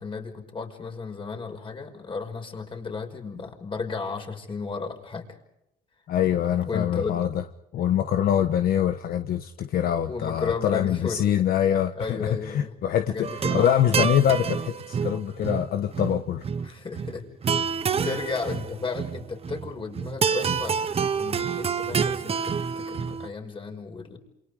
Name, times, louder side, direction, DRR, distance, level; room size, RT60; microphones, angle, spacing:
voice 1, 0.0-5.4 6.3-7.2 10.1-11.3 12.0-12.8 13.1-14.2 16.6-20.9 21.2-24.2, left 4 dB, 30° left, 4 dB, 5.6 m, -34 dB
voice 2, 6.1-7.4 7.7-16.5 18.0-18.2, left 10 dB, 65° left, 7 dB, 1.3 m, -24 dB
sound 1, 13.2-23.3, right 6 dB, 35° right, 1.3 m, -28 dB
28.5 x 28.0 x 5.1 m, 0.84 s
cardioid pair, 110°, 17 cm